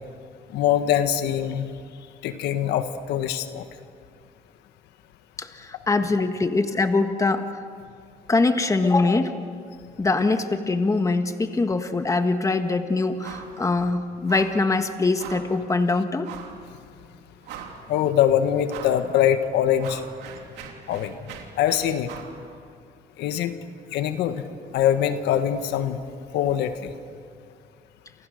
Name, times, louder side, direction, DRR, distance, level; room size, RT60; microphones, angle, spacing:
voice 1, 0.5-1.7 2.2-3.6 17.9-20.0 20.9-21.3 21.6-22.1 23.2-23.5 23.9-24.4 24.7-26.0 26.3-26.9, left 10 dB, 85° left, 9 dB, 1.5 m, -23 dB
voice 2, 5.4-7.6 8.3-9.4 10.0-16.3, left 3 dB, 20° left, 7 dB, 1.6 m, -23 dB
sound 1, 13.2-13.6 13.8-14.0 14.3-14.6 15.2-15.5 16.2-16.6 17.1-17.2 17.4-18.0 18.7-19.0 19.4-22.4, right 8 dB, 90° right, 3.4 m, -41 dB
29.0 x 28.0 x 6.5 m, 2.2 s
cardioid pair, 110°, 17 cm